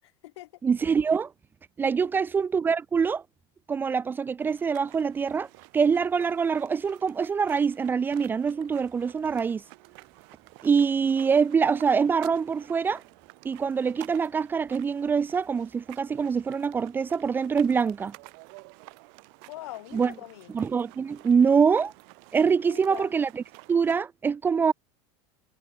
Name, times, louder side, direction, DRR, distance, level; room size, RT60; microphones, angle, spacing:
voice 1, 0.0-0.6 2.0-2.2 19.5-20.5 22.6-23.1, left 17 dB, 80° left, 5.8 m, -43 dB
voice 2, 0.6-1.3 1.8-3.2 3.7-5.5 5.7-9.6 10.6-13.0 13.4-18.1 19.9-20.1 20.5-21.9 22.3-23.3 23.7-24.7, right 6 dB, 15° right, 0.8 m, -24 dB
sound 1, 4.4-24.0, right 39 dB, 55° right, 5.0 m, -51 dB
supercardioid pair, 165°, 14 cm